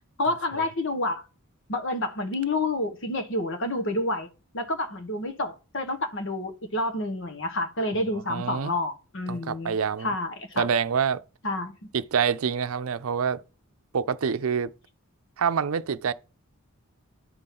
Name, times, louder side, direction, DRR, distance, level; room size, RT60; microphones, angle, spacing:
voice 1, 0.2-1.2 1.7-4.3 4.5-10.7 11.4-11.9, left 2 dB, 60° left, 1.3 m, -29 dB
voice 2, 8.3-8.7 9.3-10.1 10.6-11.2 11.9-13.4 13.9-14.7 15.4-16.1, right 6 dB, 85° right, 0.5 m, -26 dB
9.9 x 3.8 x 5.8 m
head